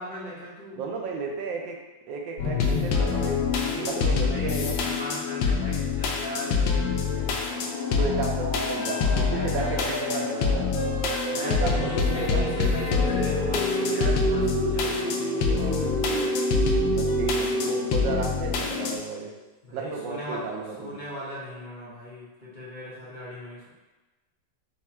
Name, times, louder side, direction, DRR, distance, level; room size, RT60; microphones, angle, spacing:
voice 1, 0.0-0.8 3.5-7.9 8.4-8.5 8.7-10.6 11.3-16.3 19.6-20.5 20.8-23.7, equal, 35° left, -10 dB, 0.9 m, -39 dB
voice 2, 0.8-1.8 2.1-4.8 8.0-10.6 11.4-12.4 15.6-16.3 16.9-19.3 19.7-21.0, right 5 dB, 90° right, 1 dB, 1.4 m, -33 dB
sound 1, 2.4-19.0, left 5 dB, 85° left, 1.3 m, -26 dB
sound 2, 7.4-19.0, right 2 dB, 35° right, 0.9 m, -34 dB
sound 3, 12.5-18.8, right 2 dB, 60° left, 0.6 m, -30 dB
4.4 x 2.4 x 4.3 m, 1.2 s
omnidirectional pair, 2.0 m